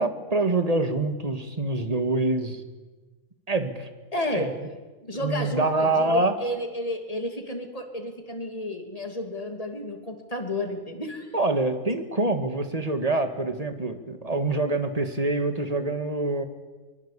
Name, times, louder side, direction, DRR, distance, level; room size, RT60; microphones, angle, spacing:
voice 1, 0.0-2.6 3.5-3.9 4.3-4.5 5.1-6.3 11.3-16.4, right 2 dB, 30° right, 8 dB, 2.0 m, -25 dB
voice 2, 4.1-4.5 5.0-11.3, left 1 dB, 30° left, 4 dB, 3.0 m, -32 dB
23.5 x 22.0 x 8.6 m, 1.3 s
omnidirectional pair, 1.3 m